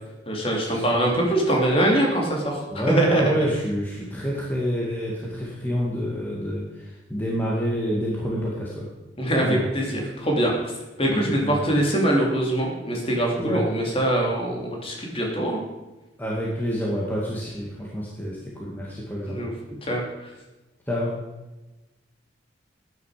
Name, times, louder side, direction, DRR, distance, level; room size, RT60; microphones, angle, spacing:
voice 1, 0.3-3.2 9.2-10.7 11.0-15.6 19.3-19.5 19.8-20.3, right 1 dB, 30° left, -1 dB, 3.0 m, -23 dB
voice 2, 2.7-8.9 9.4-9.7 11.1-11.6 13.4-13.6 16.2-19.5 20.9-21.2, equal, 10° left, -5 dB, 2.1 m, -28 dB
14.5 x 9.7 x 5.0 m, 1.1 s
head